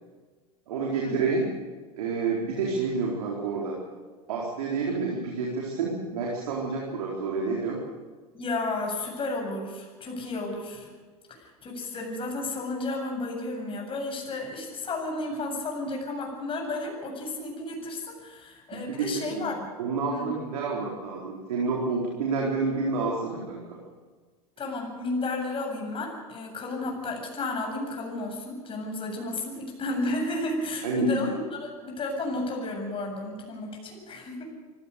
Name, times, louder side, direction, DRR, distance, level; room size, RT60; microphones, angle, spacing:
voice 1, 0.7-1.5 2.0-3.8 4.3-7.8 18.9-19.5 19.8-23.8 30.8-31.2, right 4 dB, 75° right, -2 dB, 4.3 m, -29 dB
voice 2, 8.3-10.9 11.3-19.7 20.1-20.3 24.6-34.4, left 2 dB, 30° left, 1 dB, 7.8 m, -32 dB
25.0 x 16.5 x 6.8 m, 1.4 s
hypercardioid pair, 90°, 19 cm